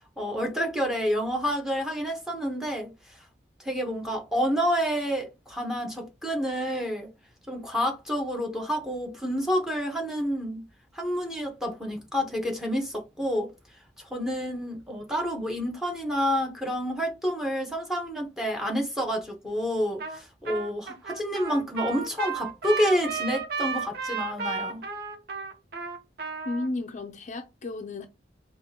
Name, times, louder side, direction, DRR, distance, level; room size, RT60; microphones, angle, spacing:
voice 1, 0.0-3.2 3.6-7.1 7.5-10.6 10.9-13.5 14.0-24.8, equal, 5° right, 1.2 m, -29 dB
Trumpet, 20.0-20.2 20.5-26.7, right 5 dB, 60° right, 1.0 m, -33 dB
voice 2, 26.5-28.1, left 2 dB, 45° left, 0.5 m, -33 dB
5.0 x 2.5 x 2.8 m
head